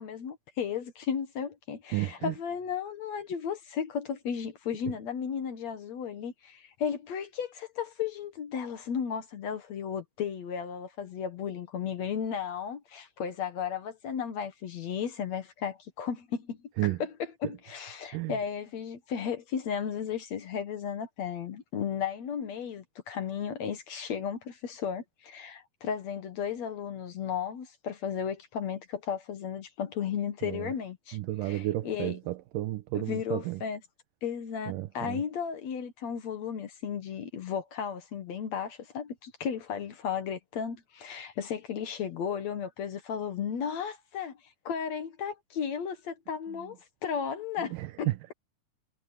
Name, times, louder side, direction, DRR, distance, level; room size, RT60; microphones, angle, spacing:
voice 1, 0.0-16.6 17.0-32.2 32.9-33.8 34.2-44.3 44.7-48.1, left 7 dB, 60° left, 2.4 m, -34 dB
voice 2, 1.9-2.3 16.8-17.0 18.1-18.3 30.4-30.7 31.1-33.6 34.7-35.2 47.7-48.2, right 16 dB, 85° right, 2.4 m, -32 dB
omnidirectional pair, 3.9 m